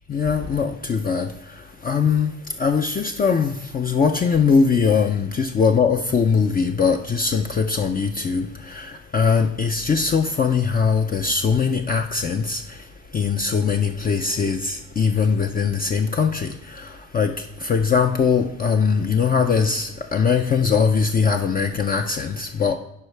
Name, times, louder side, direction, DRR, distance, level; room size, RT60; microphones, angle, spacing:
voice 1, 0.1-12.8 13.1-22.8, left 5 dB, 30° left, 4 dB, 0.5 m, -21 dB
11.0 x 4.5 x 3.3 m, 0.86 s
cardioid pair, 90°, 30 cm